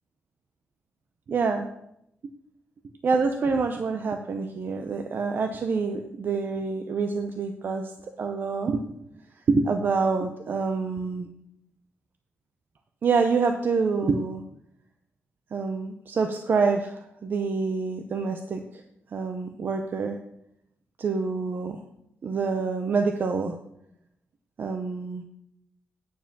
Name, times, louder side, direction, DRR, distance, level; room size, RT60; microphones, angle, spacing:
voice 1, 1.3-1.7 3.0-7.9 8.2-8.9 9.5-11.3 13.0-14.4 15.5-18.8 19.1-20.2 21.0-21.8 22.2-23.5 24.6-25.2, right 4 dB, 50° right, 5 dB, 0.7 m, -26 dB
9.4 x 4.9 x 7.3 m, 0.77 s
wide cardioid pair, 140°, 5 cm